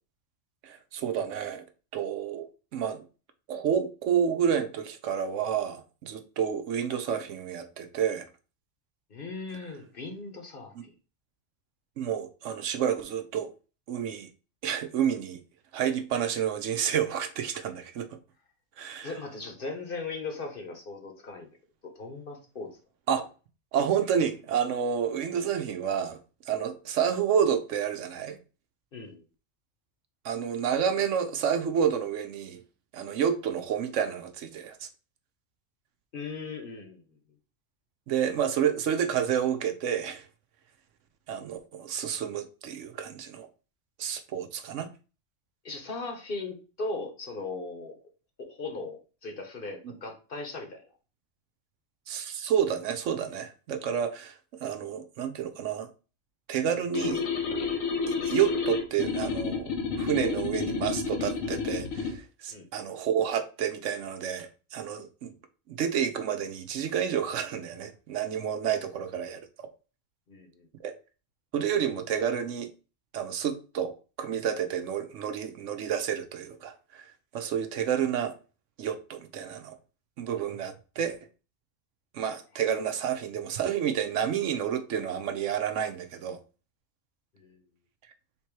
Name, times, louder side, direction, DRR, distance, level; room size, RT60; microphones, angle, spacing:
voice 1, 0.6-1.6 1.9-3.1 3.5-8.3 10.7-10.8 12.0-13.5 13.9-14.3 14.6-15.4 15.7-18.1 18.8-19.1 23.1-23.3 23.7-26.2 26.5-28.4 30.2-32.6 32.9-34.9 38.1-40.3 41.3-43.5 44.0-44.9 49.8-49.9 52.1-55.9 56.5-57.2 58.1-65.3 65.7-69.7 70.8-70.9 71.5-72.7 73.1-77.0 77.3-78.3 78.8-79.8 80.2-81.2 82.1-86.4, right 8 dB, 70° right, 0.9 m, -29 dB
voice 2, 9.1-10.9 19.0-21.5 22.0-22.7 28.9-29.2 36.1-37.0 45.6-48.0 48.4-50.8 62.5-62.7 70.3-70.7 87.3-87.6, left 3 dB, 50° left, 1.0 m, -38 dB
sound 1, 56.9-62.2, left 5 dB, 90° left, 1.3 m, -30 dB
3.5 x 3.0 x 4.5 m
omnidirectional pair, 1.3 m